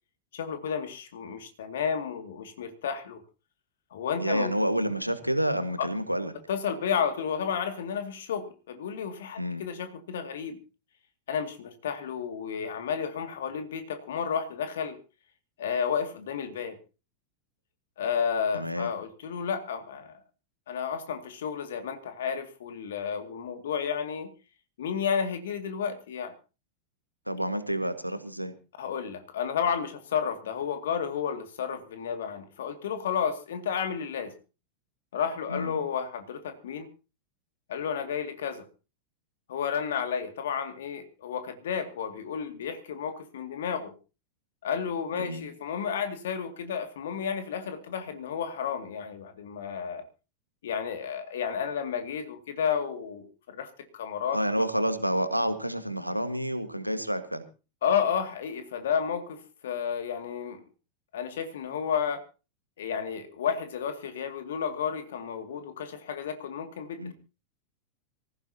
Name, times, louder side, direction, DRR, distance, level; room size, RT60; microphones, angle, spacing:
voice 1, 0.3-3.2 3.9-4.5 6.5-10.6 11.3-15.0 15.6-16.8 18.0-20.2 20.7-24.3 24.8-26.3 28.8-34.3 35.1-36.9 37.7-38.6 39.5-43.9 44.6-50.0 50.6-54.4 57.8-60.6 61.1-62.2 62.8-67.1, left 7 dB, 60° left, 8 dB, 2.2 m, -32 dB
voice 2, 4.2-6.3 9.4-9.6 18.5-18.9 27.3-28.5 35.5-35.8 45.1-45.4 54.3-57.4 67.0-67.1, equal, 90° right, 9 dB, 1.6 m, -29 dB
24.5 x 15.0 x 2.8 m, 0.33 s
figure-of-eight pair, 90°, 0 cm